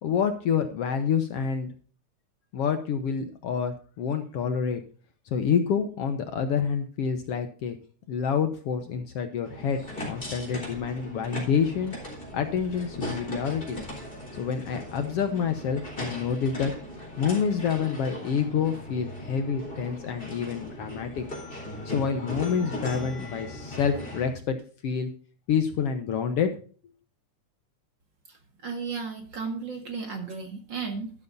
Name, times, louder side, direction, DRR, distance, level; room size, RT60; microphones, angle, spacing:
voice 1, 0.0-1.7 2.5-4.8 5.3-7.8 8.1-11.9 12.3-13.8 14.3-16.7 17.2-21.2 21.9-24.6 24.8-25.1 25.5-26.5, left 7 dB, 65° left, 7 dB, 1.7 m, -27 dB
sound 1, 9.4-24.3, left 1 dB, 15° left, 4.1 m, -38 dB
voice 2, 28.3-31.1, right 5 dB, 45° right, 5 dB, 2.2 m, -34 dB
12.5 x 12.0 x 2.6 m, 0.41 s
omnidirectional pair, 3.4 m